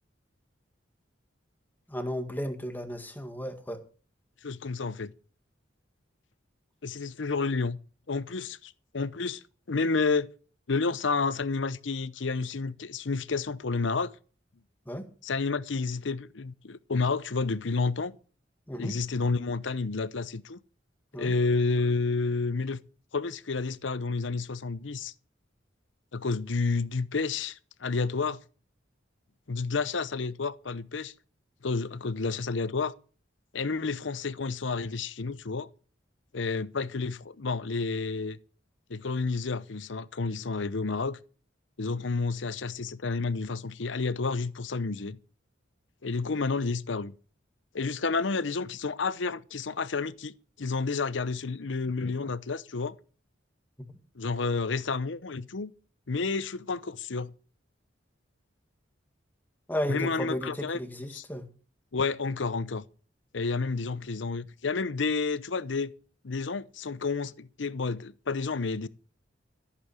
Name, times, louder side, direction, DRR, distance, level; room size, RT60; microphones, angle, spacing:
voice 1, 1.9-3.8 14.9-15.1 18.7-19.0 21.1-21.3 59.7-61.5, equal, 10° left, 1.9 m, -34 dB
voice 2, 4.4-5.1 6.8-7.8 8.1-9.4 9.7-10.3 10.7-14.1 15.2-18.1 18.8-20.6 21.1-22.8 23.1-25.1 26.1-28.4 29.5-31.1 31.6-32.9 33.5-35.7 36.3-38.4 38.9-41.2 41.8-45.2 46.0-47.1 47.7-52.9 54.2-55.7 56.1-57.3 59.9-60.8 61.1-61.2 61.9-62.8 63.3-65.9 66.2-68.9, left 4 dB, 75° left, 0.8 m, -30 dB
15.0 x 8.6 x 6.4 m
head